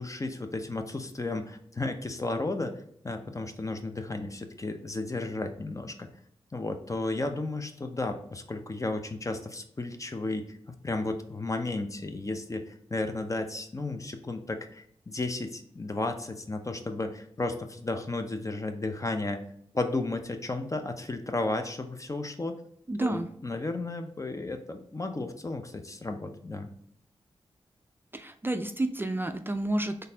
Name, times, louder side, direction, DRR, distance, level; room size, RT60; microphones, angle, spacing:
voice 1, 0.0-2.7 3.0-6.1 6.5-10.6 10.8-19.5 19.7-22.6 23.0-26.7, left 2 dB, 30° left, 6 dB, 0.6 m, -33 dB
voice 2, 22.9-23.3 28.1-30.1, right 1 dB, 20° right, 7 dB, 0.4 m, -30 dB
4.0 x 3.3 x 2.7 m, 0.68 s
cardioid pair, 45°, 11 cm